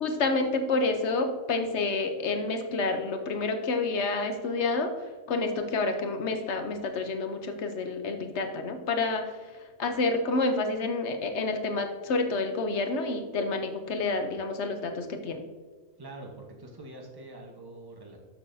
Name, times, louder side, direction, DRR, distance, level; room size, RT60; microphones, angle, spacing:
voice 1, 0.0-4.9 5.3-9.4 9.8-15.4, left 3 dB, 55° left, 6 dB, 1.0 m, -29 dB
voice 2, 16.0-18.2, right 2 dB, 15° right, 1 dB, 1.1 m, -44 dB
12.5 x 6.2 x 2.7 m, 1.3 s
omnidirectional pair, 1.5 m